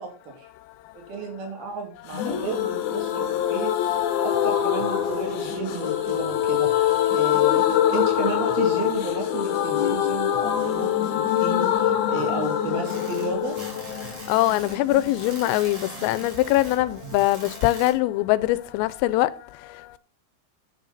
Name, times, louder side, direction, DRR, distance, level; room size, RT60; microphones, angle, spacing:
voice 1, 0.0-0.5 1.0-3.7 4.2-13.6, right 4 dB, 50° right, 4.1 m, -33 dB
voice 2, 0.6-1.1 3.8-3.9 13.9-20.0, left 16 dB, 85° left, 3.3 m, -23 dB
sound 1, 2.1-15.7 16.0-16.1 16.3-16.4, left 11 dB, 65° left, 2.7 m, -24 dB
sound 2, 4.3-17.3, right 5 dB, 75° right, 5.0 m, -45 dB
sound 3, 12.9-17.9, right 2 dB, 30° right, 4.0 m, -42 dB
10.5 x 9.3 x 4.1 m
omnidirectional pair, 5.9 m